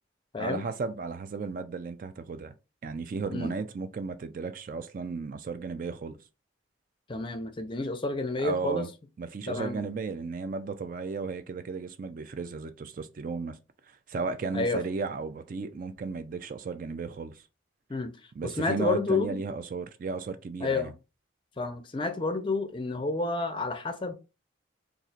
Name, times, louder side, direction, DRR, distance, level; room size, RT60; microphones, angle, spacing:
voice 1, 0.4-2.5 2.8-6.2 8.4-8.9 9.2-13.6 14.1-17.4 18.4-20.9, right 4 dB, 45° right, 0.3 m, -34 dB
voice 2, 7.1-8.9 9.5-9.9 14.5-14.8 17.9-18.1 18.4-19.4 20.6-20.9 21.6-24.1, left 3 dB, 25° left, 0.4 m, -30 dB
4.2 x 2.5 x 2.4 m
head